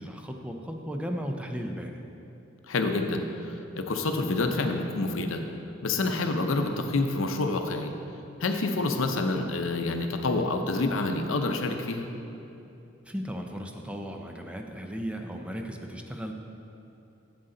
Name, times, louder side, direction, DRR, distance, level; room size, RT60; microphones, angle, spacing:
voice 1, 0.0-2.0 13.0-16.3, equal, 5° right, 3 dB, 0.5 m, -35 dB
voice 2, 2.7-5.4 5.8-7.9 8.4-12.1, left 2 dB, 80° left, 5 dB, 0.7 m, -28 dB
8.1 x 7.8 x 3.8 m, 2.8 s
head